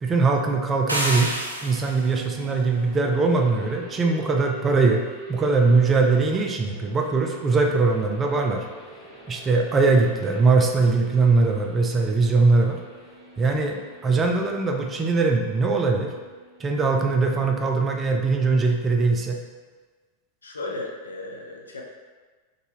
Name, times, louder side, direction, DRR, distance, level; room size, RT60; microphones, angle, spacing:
voice 1, 0.0-1.3 1.6-5.0 5.3-8.7 9.3-12.8 13.4-16.1 16.6-19.4, right 3 dB, 20° right, 2 dB, 0.4 m, -21 dB
sound 1, 0.9-2.2, right 1 dB, 80° right, 0.4 m, -28 dB
sound 2, 1.8-17.6, right 2 dB, 40° left, 1.4 m, -45 dB
voice 2, 20.4-21.8, left 2 dB, 75° left, -1 dB, 0.5 m, -35 dB
3.8 x 2.7 x 3.0 m, 1.4 s
figure-of-eight pair, 90°, 0 cm